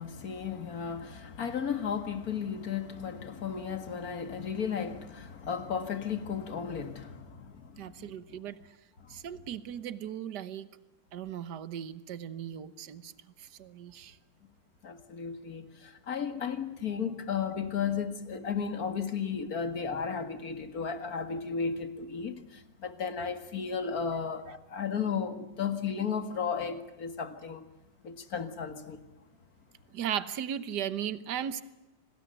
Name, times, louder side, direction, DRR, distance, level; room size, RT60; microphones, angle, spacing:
voice 1, 0.0-8.4 14.8-27.7 28.0-29.0, left 6 dB, 55° left, 2.3 m, -34 dB
voice 2, 7.8-8.6 9.1-10.7 11.1-13.1 13.4-14.2 29.9-31.6, right 9 dB, 65° right, 1.7 m, -37 dB
26.5 x 19.5 x 9.1 m
omnidirectional pair, 1.9 m